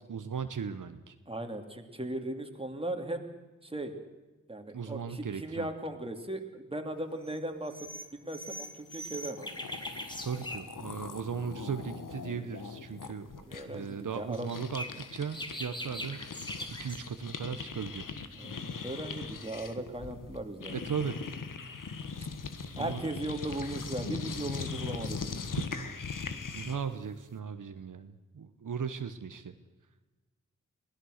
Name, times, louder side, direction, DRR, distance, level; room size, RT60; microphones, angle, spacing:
voice 1, 0.1-1.1 4.7-5.7 10.2-16.2 16.8-18.0 20.7-21.2 22.8-23.0 26.5-29.5, right 6 dB, 75° right, 9 dB, 1.1 m, -37 dB
voice 2, 1.3-3.2 3.6-3.9 4.5-9.5 13.5-14.5 18.4-20.8 22.8-25.2, right 1 dB, 15° right, 4 dB, 2.8 m, -37 dB
sound 1, 7.2-7.4 7.6-10.7 14.3-17.0, equal, 15° left, 2.7 m, -41 dB
sound 2, 9.1-9.2 9.3-15.5 15.8-26.9, left 5 dB, 80° left, 1.6 m, -40 dB
23.0 x 17.5 x 6.6 m, 1.2 s
cardioid pair, 60°, 31 cm